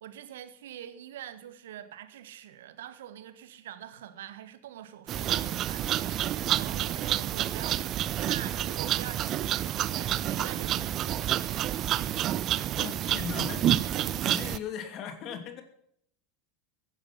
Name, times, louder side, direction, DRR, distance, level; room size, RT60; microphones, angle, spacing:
voice 1, 0.0-11.3 13.7-14.0, right 11 dB, 70° right, 1.5 m, -45 dB
sound 1, 5.1-14.6, right 12 dB, 40° right, 0.6 m, -29 dB
voice 2, 12.8-15.6, left 8 dB, 45° left, 2.9 m, -38 dB
15.0 x 10.5 x 5.7 m
hypercardioid pair, 85°, 0 cm